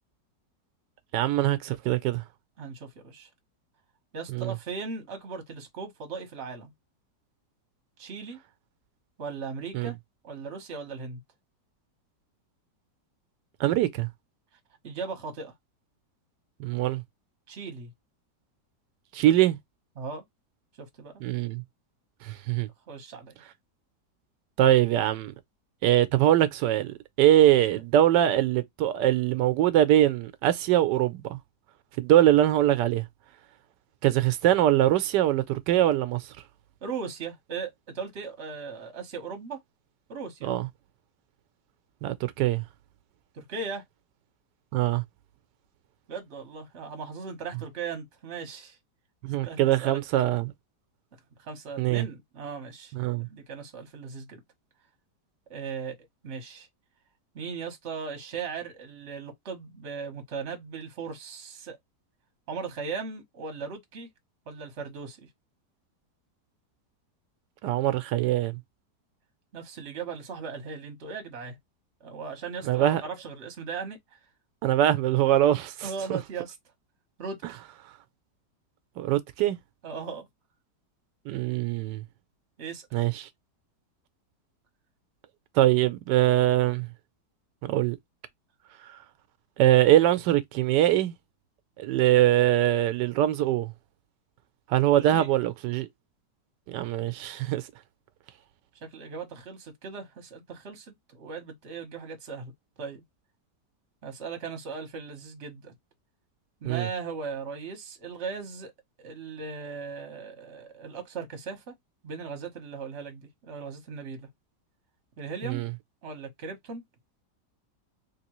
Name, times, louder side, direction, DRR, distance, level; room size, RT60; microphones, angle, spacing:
voice 1, 1.1-2.2 4.3-4.5 9.7-9.9 13.6-14.1 16.6-17.0 19.1-19.6 21.2-21.6 22.2-22.7 24.6-25.3 25.8-31.4 32.0-33.0 34.0-36.2 40.4-40.7 42.0-42.6 44.7-45.0 49.2-50.5 51.8-52.0 52.9-53.3 67.6-68.6 72.6-73.0 74.6-76.2 79.0-79.6 81.3-82.0 82.9-83.3 85.6-86.9 87.6-88.0 89.6-91.1 91.8-93.7 94.7-95.9 96.7-97.6 106.6-106.9 115.4-115.7, right 13 dB, 90° right, 1.2 m, -23 dB
voice 2, 2.6-3.3 4.1-6.7 8.0-8.4 9.2-9.9 10.2-11.2 14.8-15.5 17.5-17.9 20.0-20.2 20.8-21.2 22.9-23.4 27.5-27.8 36.8-39.6 40.1-40.5 43.3-43.8 46.1-48.8 49.4-50.0 51.4-52.9 53.2-54.4 55.5-56.0 56.2-56.7 57.3-61.8 62.5-64.1 64.5-65.3 69.5-71.6 72.0-74.0 75.8-76.5 77.2-77.6 79.8-80.3 82.6-83.0 95.0-95.3 98.9-102.5 102.8-103.0 104.0-105.7 106.6-108.7 109.0-111.7 112.0-114.3 115.2-115.6 116.0-116.8, right 5 dB, 45° right, 1.2 m, -38 dB
3.4 x 2.9 x 3.0 m
omnidirectional pair, 1.8 m